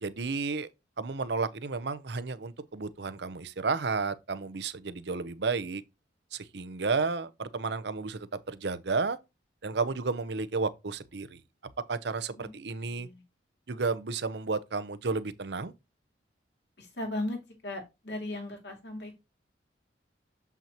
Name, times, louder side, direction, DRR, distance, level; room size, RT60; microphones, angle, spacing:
voice 1, 0.0-0.7 1.0-5.8 6.3-9.2 9.6-11.4 11.9-13.1 13.7-15.7, right 4 dB, 60° right, 0.7 m, -32 dB
voice 2, 12.8-13.2 16.8-19.2, left 1 dB, 65° left, 2.4 m, -37 dB
7.4 x 5.7 x 2.9 m
head